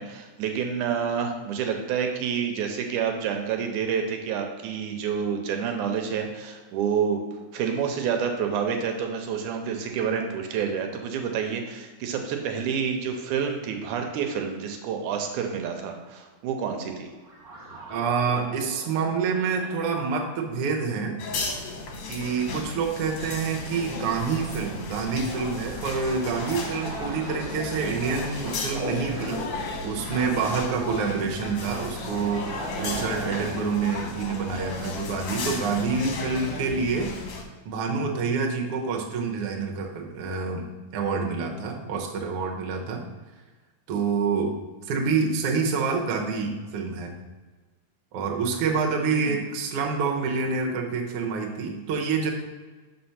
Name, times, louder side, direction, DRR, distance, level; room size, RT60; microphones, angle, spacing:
voice 1, 0.0-7.2 7.5-17.1 49.1-49.4, right 7 dB, 85° right, 4 dB, 2.1 m, -28 dB
sound 1, 17.1-33.5, right 2 dB, 45° right, 1.2 m, -40 dB
voice 2, 17.9-21.2 22.1-29.5 29.8-37.1 37.6-43.0 43.9-44.6 44.9-47.1 48.1-52.3, right 5 dB, 65° right, 1 dB, 1.4 m, -27 dB
sound 2, 21.2-37.4, left 3 dB, 65° left, 1.7 m, -35 dB
6.2 x 4.3 x 5.6 m, 1.3 s
omnidirectional pair, 3.6 m